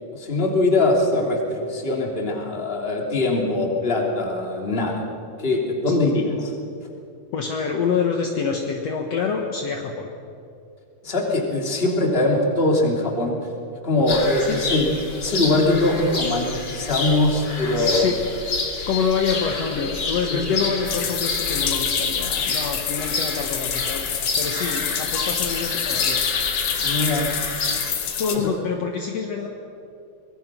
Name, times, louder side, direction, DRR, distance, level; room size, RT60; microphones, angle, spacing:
voice 1, 0.1-5.0 5.4-6.5 11.0-13.4 13.8-14.9 15.2-18.1 18.7-18.9 20.3-20.6 26.8-27.3 28.3-28.5, left 2 dB, 15° left, 0 dB, 2.2 m, -22 dB
voice 2, 7.3-10.1 14.4-14.6 17.7-18.2 18.9-24.0 24.4-26.2 27.9-29.5, left 6 dB, 75° left, 2 dB, 1.5 m, -26 dB
sound 1, 14.1-27.9, left 3 dB, 35° left, 2.1 m, -29 dB
sound 2, 20.8-28.4, left 7 dB, 55° left, 2.1 m, -27 dB
25.0 x 20.5 x 6.1 m, 2.6 s
omnidirectional pair, 4.9 m